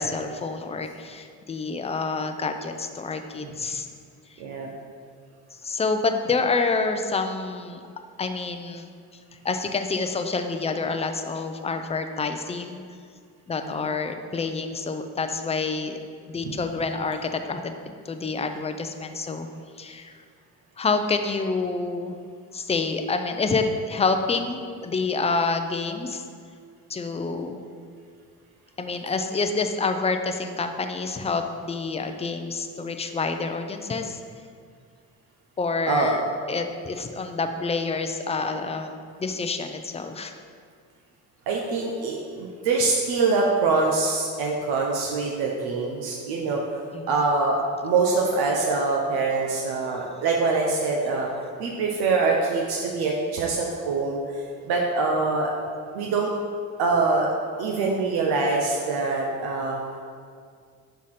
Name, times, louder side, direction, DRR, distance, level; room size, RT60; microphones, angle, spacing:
voice 1, 0.0-3.9 5.6-7.8 8.2-8.9 9.4-12.8 13.5-16.0 16.3-17.7 18.1-19.5 19.8-20.1 20.8-22.1 22.5-26.2 26.9-27.6 28.8-34.2 35.6-36.2 36.5-38.9 39.2-40.3 46.9-47.1, left 4 dB, 15° left, 6 dB, 0.5 m, -27 dB
voice 2, 4.4-4.7 13.6-13.8 35.9-36.1 41.5-46.8 47.1-51.3 51.6-54.4 54.7-55.5 55.9-56.3 56.8-57.3 57.6-59.8, right 3 dB, 85° right, -1 dB, 0.8 m, -24 dB
5.6 x 4.8 x 5.7 m, 2.1 s
cardioid pair, 90°, 37 cm